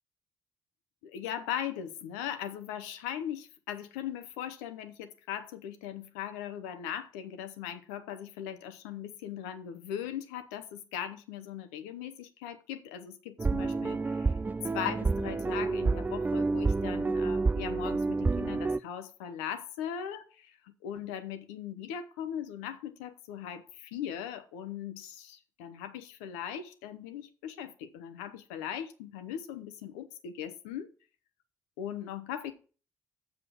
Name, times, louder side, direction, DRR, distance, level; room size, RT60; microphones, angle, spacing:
voice 1, 1.0-14.3 14.7-30.9 31.8-32.5, left 9 dB, 75° left, 1.0 m, -39 dB
sound 1, 13.4-18.8, right 3 dB, 20° right, 0.4 m, -29 dB
7.3 x 7.3 x 6.2 m
figure-of-eight pair, 40°, 9 cm